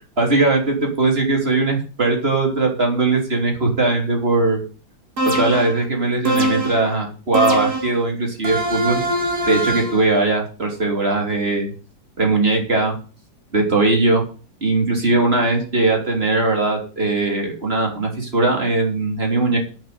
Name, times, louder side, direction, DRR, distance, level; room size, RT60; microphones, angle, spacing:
voice 1, 0.2-4.6 5.4-9.0 9.5-11.7 12.2-13.0 13.5-14.2 14.6-19.6, right 2 dB, 30° right, 1 dB, 3.6 m, -19 dB
sound 1, 5.2-5.8 6.2-6.9 7.3-8.0 8.4-10.0, right 1 dB, 50° right, 3.1 m, -22 dB
8.5 x 7.1 x 8.7 m, 0.37 s
omnidirectional pair, 2.1 m